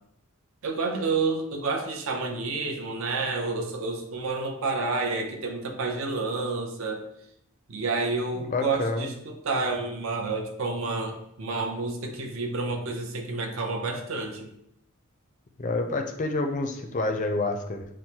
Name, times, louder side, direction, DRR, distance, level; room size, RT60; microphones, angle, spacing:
voice 1, 0.6-7.0 7.7-14.5, right 3 dB, 65° right, 3 dB, 0.6 m, -29 dB
voice 2, 8.5-9.1 15.6-17.9, left 2 dB, 35° left, 4 dB, 0.4 m, -28 dB
6.1 x 2.1 x 2.8 m, 0.75 s
head